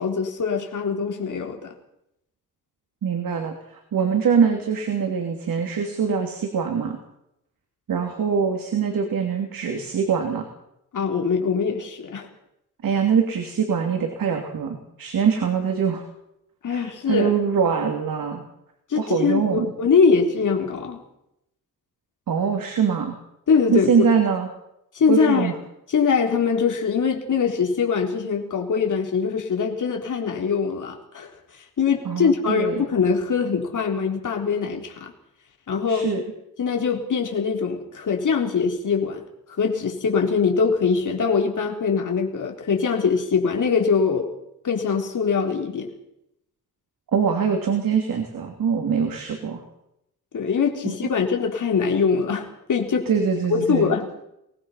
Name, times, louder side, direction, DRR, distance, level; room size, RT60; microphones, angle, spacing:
voice 1, 0.0-1.7 10.9-12.3 16.6-17.3 18.9-21.0 23.5-24.1 24.9-25.5 25.9-31.3 31.8-35.1 35.7-36.1 36.6-39.2 39.6-44.3 44.6-45.9 50.3-53.1 53.5-54.1, left 5 dB, 65° left, 2 dB, 4.0 m, -22 dB
voice 2, 3.0-7.0 7.9-10.4 12.8-16.0 16.7-18.4 19.0-19.7 22.3-23.1 23.7-24.5 25.1-25.5 32.0-32.8 35.9-36.2 47.1-49.6 50.8-50.9 53.1-53.9, right 6 dB, 80° right, 4 dB, 3.0 m, -23 dB
23.5 x 20.0 x 5.8 m, 0.81 s
wide cardioid pair, 125°, 34 cm